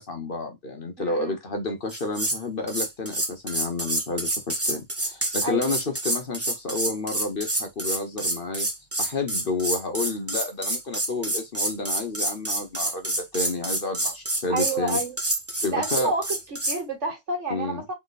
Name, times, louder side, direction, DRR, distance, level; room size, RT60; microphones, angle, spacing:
voice 1, 0.0-8.7 9.0-15.0 15.6-16.1 17.5-17.8, left 3 dB, 45° left, 1.1 m, -30 dB
voice 2, 1.0-1.4 5.4-5.7 14.5-15.1 15.7-17.9, right 3 dB, 60° right, 2.0 m, -29 dB
sound 1, 1.9-2.4 2.7-16.8, right 1 dB, 15° right, 0.7 m, -28 dB
3.7 x 3.1 x 4.0 m
omnidirectional pair, 1.4 m